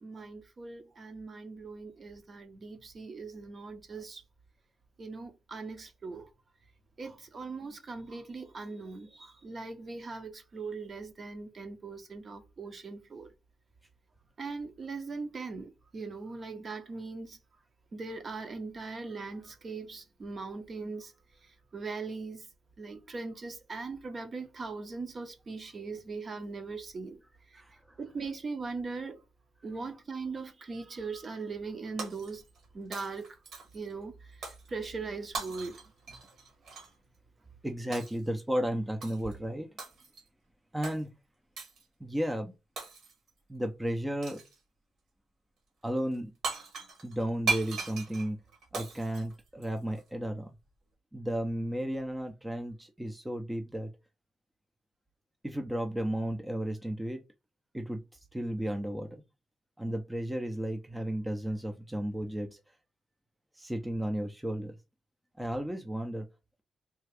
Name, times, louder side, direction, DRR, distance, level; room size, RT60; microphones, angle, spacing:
voice 1, 0.0-4.2 5.0-6.3 7.0-13.3 14.4-17.4 17.9-21.1 21.7-22.5 22.8-27.2 27.5-27.6 28.0-29.2 29.6-32.4 32.7-33.3 33.7-34.3 34.7-35.8, right 4 dB, 40° right, 0.8 m, -40 dB
voice 2, 27.5-28.0 37.6-39.7 40.7-41.1 42.0-42.5 43.5-44.4 45.8-46.3 47.0-48.4 48.7-50.5 51.1-53.9 55.4-57.2 57.7-58.0 58.3-59.2 59.8-62.6 63.6-64.8 65.4-66.3, right 1 dB, 10° right, 0.5 m, -33 dB
Shatter, 32.0-32.6 32.9-33.9 34.4-34.7 35.3-36.9 37.9-38.3 39.0-39.3 39.8-40.3 40.8-41.0 41.6-41.8 42.8-43.3 44.2-44.6 46.1-46.2 46.4-50.0, right 4 dB, 65° right, 1.5 m, -38 dB
3.4 x 2.3 x 3.3 m
cardioid pair, 90°, 0 cm